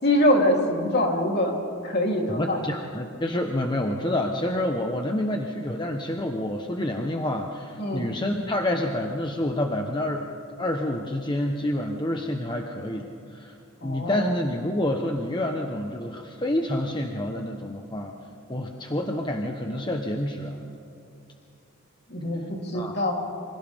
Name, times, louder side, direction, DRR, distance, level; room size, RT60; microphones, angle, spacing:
voice 1, 0.0-1.5 1.8-2.6 7.8-8.1 13.8-14.3 22.1-23.1, left 1 dB, 50° left, 0 dB, 3.4 m, -24 dB
voice 2, 2.3-10.2 10.6-13.5 13.8-18.1 18.5-20.6 22.7-23.0, left 1 dB, 20° left, 2 dB, 1.1 m, -28 dB
28.5 x 26.5 x 3.6 m, 2.7 s
head